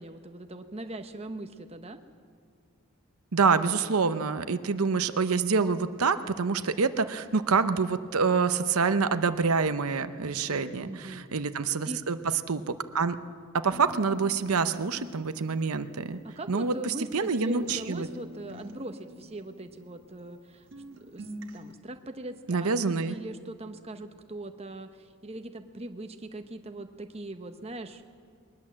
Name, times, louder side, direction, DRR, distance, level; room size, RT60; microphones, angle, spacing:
voice 1, 0.0-2.0 10.4-11.3 11.9-12.0 16.2-20.7 21.1-28.0, right 1 dB, 25° right, 7 dB, 1.0 m, -41 dB
voice 2, 3.3-12.2 12.5-13.2 13.6-16.2 16.5-18.1 22.5-23.2, right 5 dB, 75° right, 10 dB, 0.8 m, -26 dB
sound 1, 13.7-17.4 17.7-20.5 20.7-21.7, equal, 55° right, 1.5 m, -46 dB
21.5 x 19.5 x 7.5 m, 2.2 s
head